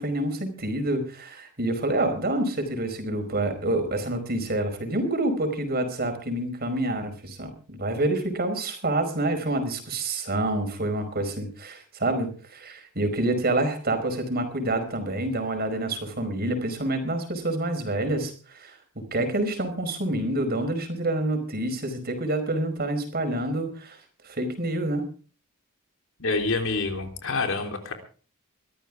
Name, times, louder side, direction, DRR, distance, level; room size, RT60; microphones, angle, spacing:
voice 1, 0.0-18.8 19.1-24.0 24.2-25.1, right 1 dB, 45° right, 6 dB, 4.7 m, -27 dB
voice 2, 26.2-27.9, left 3 dB, 65° left, 5 dB, 3.5 m, -27 dB
23.0 x 13.5 x 3.6 m, 0.39 s
head